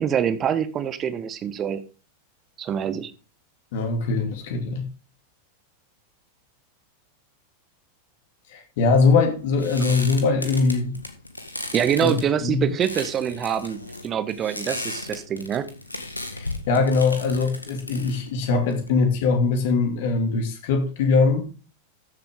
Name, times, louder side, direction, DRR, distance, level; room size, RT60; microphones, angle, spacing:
voice 1, 0.0-1.8 2.6-3.1 11.7-15.6, right 8 dB, 30° right, 12 dB, 1.2 m, -25 dB
voice 2, 3.7-4.9 8.5-11.0 12.0-12.1 12.4-12.6 16.3-21.5, left 4 dB, 55° left, 4 dB, 2.6 m, -22 dB
sound 1, 8.9-19.3, left 2 dB, 85° left, 1.7 m, -36 dB
14.0 x 7.4 x 3.7 m, 0.34 s
figure-of-eight pair, 90°, 0 cm